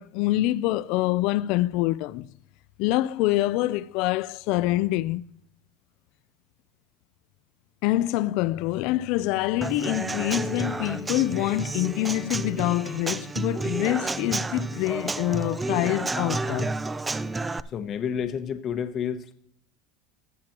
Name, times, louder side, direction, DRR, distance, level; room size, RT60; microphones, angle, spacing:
voice 1, 0.0-2.3 2.8-5.2 7.8-16.8, left 16 dB, 60° left, 0.4 m, -25 dB
Human voice / Acoustic guitar / Drum, 9.6-17.6, right 3 dB, 15° right, 0.4 m, -31 dB
voice 2, 17.7-19.3, left 8 dB, 40° left, 0.8 m, -30 dB
19.0 x 7.6 x 3.0 m
supercardioid pair, 115°, 0 cm